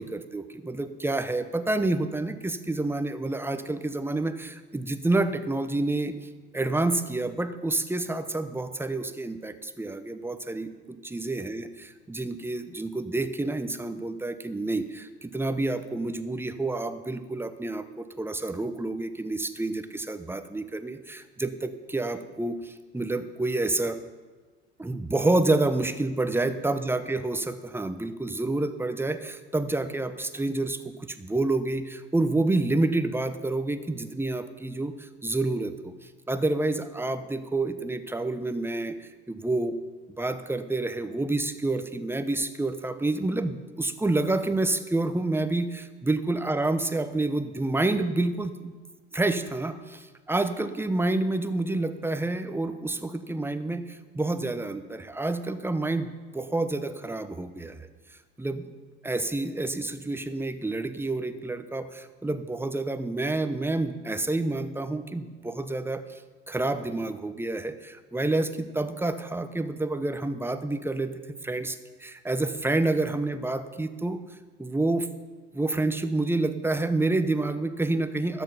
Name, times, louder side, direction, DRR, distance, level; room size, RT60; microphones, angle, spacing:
voice 1, 0.0-6.1 6.5-11.7 12.1-24.0 24.8-35.9 36.3-39.8 40.2-48.7 49.1-57.9 58.4-58.7 59.0-66.2 66.5-74.2 74.6-75.1 75.5-78.4, right 2 dB, 5° right, 10 dB, 0.8 m, -28 dB
13.0 x 7.4 x 5.5 m, 1.3 s
hypercardioid pair, 80°, 32 cm